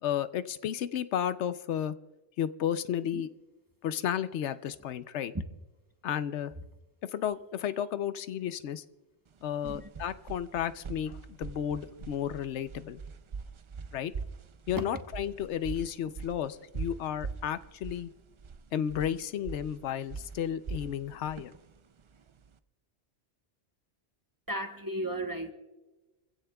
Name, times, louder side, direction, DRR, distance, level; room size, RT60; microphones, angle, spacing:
voice 1, 0.0-2.0 2.4-3.3 3.8-5.3 6.0-6.5 7.0-8.8 9.4-13.0 13.9-14.1 14.7-18.1 18.7-21.5, left 9 dB, 85° left, 13 dB, 0.9 m, -33 dB
sound 1, 9.3-22.6, right 5 dB, 50° right, 0.3 m, -42 dB
voice 2, 24.5-25.5, right 1 dB, 20° right, 5 dB, 0.9 m, -35 dB
26.5 x 16.0 x 2.3 m, 1.1 s
omnidirectional pair, 1.1 m